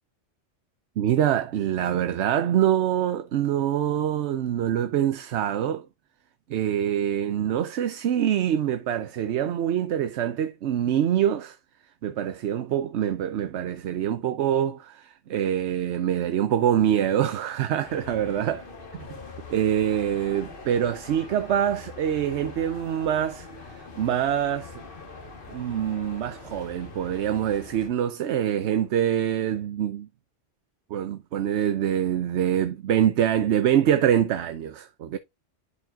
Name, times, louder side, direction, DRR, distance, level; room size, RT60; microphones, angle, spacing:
voice 1, 1.0-5.9 6.5-11.6 12.0-18.6 19.5-23.5 24.0-24.8 25.5-30.1 30.9-35.2, right 10 dB, 70° right, 0.9 m, -25 dB
sound 1, 17.8-27.9, left 4 dB, 45° left, 1.5 m, -43 dB
11.5 x 4.7 x 2.4 m
omnidirectional pair, 1.3 m